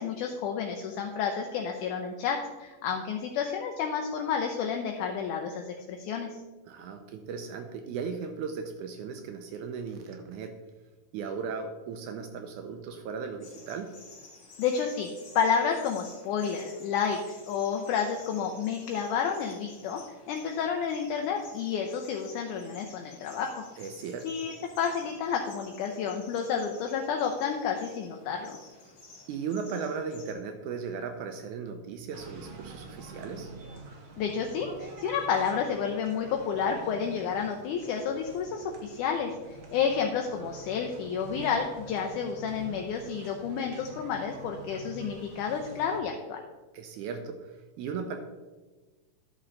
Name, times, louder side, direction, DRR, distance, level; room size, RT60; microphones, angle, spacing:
voice 1, 0.0-6.3 14.6-15.1 15.4-20.0 20.3-23.7 24.2-28.6 34.2-46.4, left 6 dB, 75° left, 2 dB, 2.0 m, -30 dB
voice 2, 6.7-10.5 11.1-13.9 23.8-24.3 29.3-33.5 46.7-48.2, right 5 dB, 80° right, 6 dB, 1.9 m, -37 dB
sound 1, 13.4-30.3, left 3 dB, 45° left, 2.6 m, -52 dB
sound 2, 32.1-46.0, right 4 dB, 55° right, 1.5 m, -47 dB
11.5 x 6.4 x 3.9 m, 1.3 s
omnidirectional pair, 4.0 m